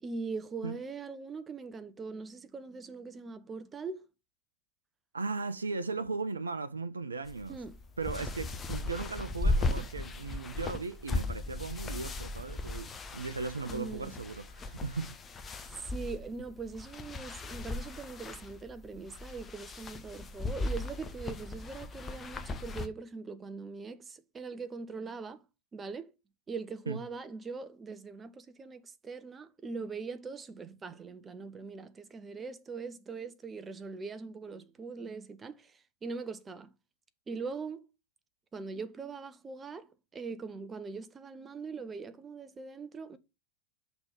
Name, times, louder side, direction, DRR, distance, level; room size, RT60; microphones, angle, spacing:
voice 1, 0.0-4.0 7.5-7.8 13.7-14.1 15.8-25.4 25.7-26.1 26.5-36.7 37.3-37.9 38.5-43.2, right 4 dB, 20° right, 0.6 m, -41 dB
voice 2, 5.1-7.6 8.0-15.1 26.9-27.0, right 4 dB, 75° right, 0.5 m, -37 dB
sound 1, 7.3-22.9, left 2 dB, 20° left, 0.7 m, -37 dB
6.0 x 3.4 x 5.7 m
figure-of-eight pair, 90°, 0 cm